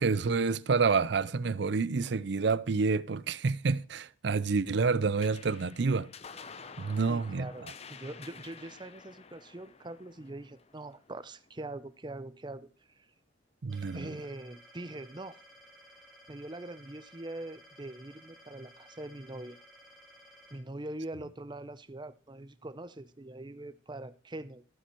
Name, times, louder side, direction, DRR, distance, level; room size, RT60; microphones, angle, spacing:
voice 1, 0.0-6.1 6.8-7.7 13.6-14.2, right 4 dB, 60° right, 0.5 m, -28 dB
sound 1, 5.2-12.0, left 5 dB, 35° left, 0.7 m, -50 dB
voice 2, 7.1-12.7 13.0-13.1 13.9-15.4 16.3-19.6 20.5-24.6, right 1 dB, 25° right, 0.7 m, -43 dB
sound 2, 13.7-20.6, equal, ahead, 3.1 m, -56 dB
14.0 x 8.9 x 4.5 m
head